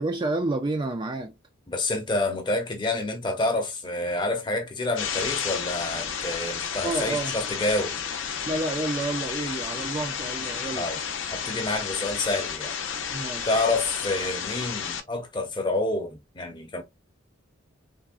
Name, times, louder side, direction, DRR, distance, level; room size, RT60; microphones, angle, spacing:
voice 1, 0.0-1.3 6.8-7.3 8.4-10.9 13.1-13.6, right 2 dB, 25° right, 0.3 m, -29 dB
voice 2, 1.7-7.9 10.8-11.0 11.3-12.7 13.5-16.8, left 2 dB, 25° left, 0.6 m, -28 dB
sound 1, 5.0-15.0, left 7 dB, 70° left, 0.6 m, -32 dB
3.4 x 2.1 x 2.3 m
head